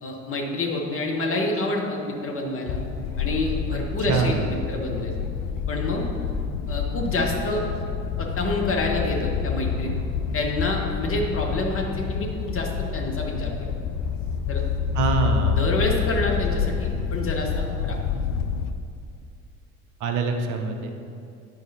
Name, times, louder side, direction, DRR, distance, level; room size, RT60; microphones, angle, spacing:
voice 1, 0.0-2.8 3.2-5.1 5.7-6.0 6.7-7.6 8.2-9.9 10.3-13.5 14.5-14.6 15.5-18.0, left 2 dB, 30° left, 0 dB, 1.5 m, -27 dB
sound 1, 2.7-18.7, left 7 dB, 50° left, 0.6 m, -28 dB
voice 2, 4.1-4.4 14.9-15.6 20.0-20.9, right 5 dB, 45° right, 5 dB, 0.9 m, -24 dB
10.5 x 4.8 x 4.2 m, 2.4 s
figure-of-eight pair, 60°, 41 cm